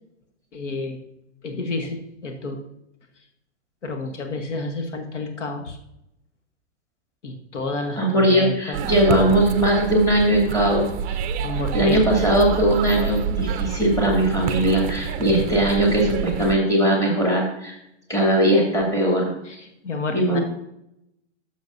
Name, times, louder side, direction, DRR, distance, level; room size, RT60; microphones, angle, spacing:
voice 1, 0.5-1.0 1.4-2.6 3.8-5.8 7.2-8.8 11.1-12.0 19.4-20.4, left 3 dB, 80° left, 5 dB, 1.4 m, -30 dB
voice 2, 8.0-10.9 11.7-17.7 18.1-19.3 20.1-20.4, right 1 dB, 10° left, -2 dB, 2.6 m, -19 dB
sound 1, 8.7-16.5, right 7 dB, 25° right, 0.5 m, -28 dB
11.5 x 7.2 x 2.7 m, 0.82 s
hypercardioid pair, 120°, 35 cm